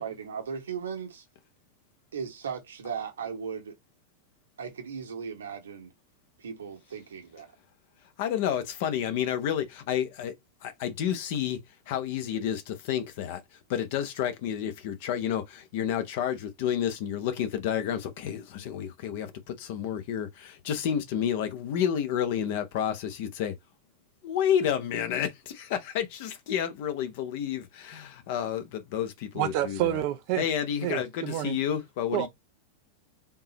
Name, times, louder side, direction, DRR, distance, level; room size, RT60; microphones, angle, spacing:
voice 1, 0.0-1.2 2.1-3.8 4.6-5.9 6.4-7.5, right 6 dB, 65° right, 1.0 m, -37 dB
voice 2, 8.2-10.3 10.6-11.6 11.9-13.4 13.7-23.5 24.2-30.0 30.4-32.3, left 9 dB, 50° left, 0.8 m, -30 dB
voice 3, 29.4-30.4 30.8-31.6 32.1-32.3, right 13 dB, 45° right, 0.4 m, -28 dB
3.6 x 2.8 x 2.9 m
figure-of-eight pair, 90°, 0 cm